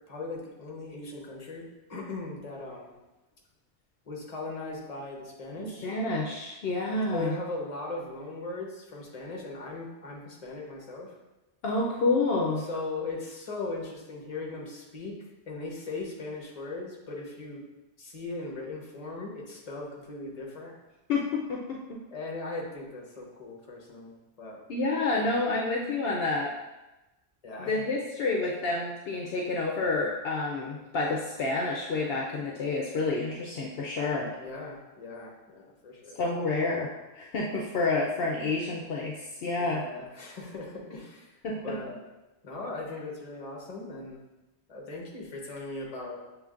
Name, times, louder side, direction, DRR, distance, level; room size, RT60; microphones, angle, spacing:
voice 1, 0.1-2.9 4.1-5.9 7.1-11.1 12.6-15.1 15.5-17.7 18.0-20.7 22.1-24.6 27.4-27.9 28.1-28.3 34.4-36.2 39.6-41.4 41.6-42.0 42.4-44.2 44.7-46.2, left 2 dB, 40° left, -2 dB, 1.0 m, -39 dB
voice 2, 5.6-7.3 11.6-12.6 21.1-22.0 24.7-26.5 27.6-34.4 36.2-39.8 41.4-41.8, left 3 dB, 70° left, -2 dB, 0.8 m, -29 dB
7.0 x 3.1 x 2.4 m, 1.0 s
omnidirectional pair, 1.1 m